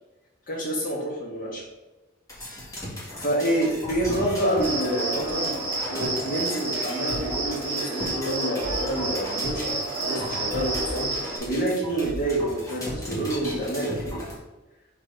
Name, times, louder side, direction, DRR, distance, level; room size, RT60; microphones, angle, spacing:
voice 1, 0.5-1.6 3.2-5.5 5.9-14.2, right 1 dB, 40° left, -2 dB, 1.6 m, -28 dB
sound 1, 2.3-14.3, equal, 15° left, 1.8 m, -36 dB
Cricket, 4.6-11.4, right 2 dB, 10° right, 1.3 m, -30 dB
4.3 x 4.3 x 5.2 m, 1.1 s
head